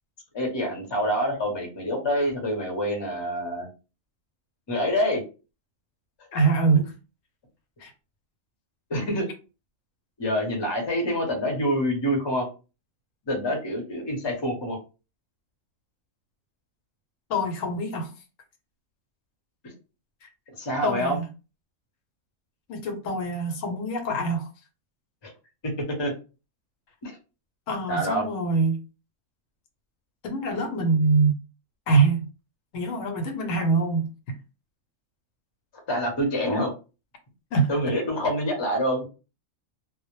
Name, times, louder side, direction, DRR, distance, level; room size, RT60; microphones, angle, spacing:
voice 1, 0.3-3.7 4.7-5.2 8.9-9.3 10.2-12.5 13.3-14.8 20.6-21.2 25.2-25.3 25.6-25.7 26.0-26.1 27.0-27.2 27.9-28.2 35.9-36.7 37.7-39.0, equal, 30° left, 0.6 m, -26 dB
voice 2, 6.3-6.9 7.8-7.9 17.3-18.1 20.2-20.3 20.8-21.3 22.7-24.5 27.7-28.8 30.2-31.4 31.9-32.2 32.7-34.4 37.5-37.7, right 3 dB, 85° left, 1.0 m, -24 dB
2.1 x 2.0 x 2.9 m
omnidirectional pair, 1.3 m